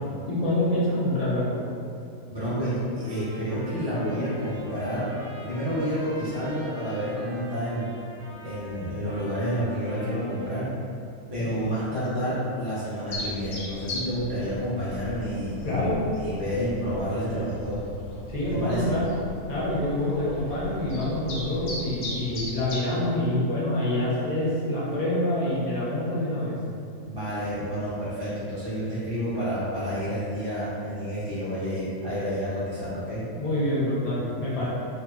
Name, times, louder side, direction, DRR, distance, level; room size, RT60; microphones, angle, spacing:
voice 1, 0.2-1.6 11.3-11.5 15.6-16.1 18.3-19.1 19.5-26.5 33.4-34.7, left 1 dB, 50° left, -8 dB, 0.4 m, -26 dB
voice 2, 2.3-5.1 5.4-7.9 8.4-10.7 11.3-15.8 16.2-17.8 18.5-18.9 27.0-33.2, equal, 25° right, -12 dB, 0.5 m, -29 dB
Trumpet, 3.0-10.7, right 1 dB, 90° right, 1.1 m, -46 dB
sound 1, 13.1-22.8, left 2 dB, 65° left, 0.8 m, -38 dB
2.7 x 2.3 x 2.4 m, 2.5 s
omnidirectional pair, 1.5 m